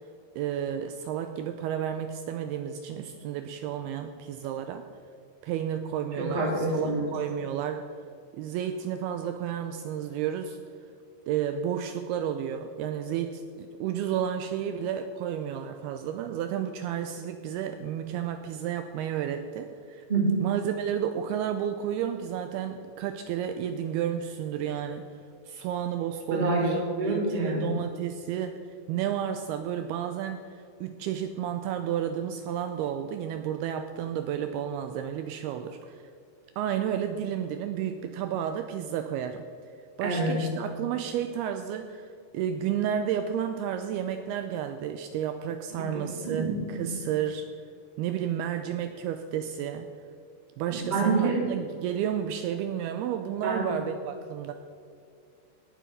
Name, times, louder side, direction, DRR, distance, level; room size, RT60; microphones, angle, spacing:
voice 1, 0.4-4.8 5.4-7.8 8.3-10.6 11.3-20.1 20.4-25.1 25.5-28.6 28.9-36.0 36.6-39.4 40.0-47.5 48.0-49.9 50.6-54.5, right 9 dB, 85° right, 8 dB, 2.3 m, -31 dB
voice 2, 6.1-7.1 20.1-20.4 26.3-27.6 40.0-40.4 45.8-45.9 46.2-46.9 50.7-51.4 53.4-53.6, right 2 dB, 15° right, -2 dB, 1.6 m, -27 dB
18.0 x 7.5 x 5.2 m, 2.5 s
omnidirectional pair, 4.9 m